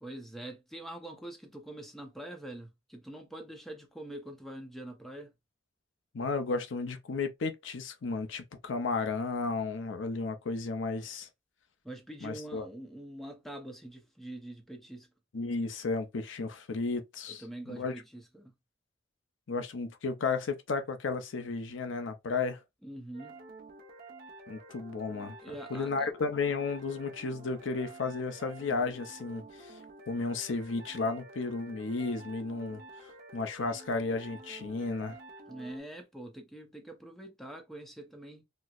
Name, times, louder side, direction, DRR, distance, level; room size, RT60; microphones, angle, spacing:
voice 1, 0.0-5.3 11.8-15.1 17.3-18.5 22.8-23.4 25.4-26.1 35.5-38.4, right 1 dB, ahead, 0.6 m, -44 dB
voice 2, 6.1-11.3 12.2-12.6 15.3-17.9 19.5-22.6 24.5-29.8 30.1-32.8 33.3-35.2, left 4 dB, 85° left, 0.6 m, -33 dB
sound 1, 23.1-35.8, right 2 dB, 50° right, 0.9 m, -50 dB
4.3 x 2.0 x 2.4 m
head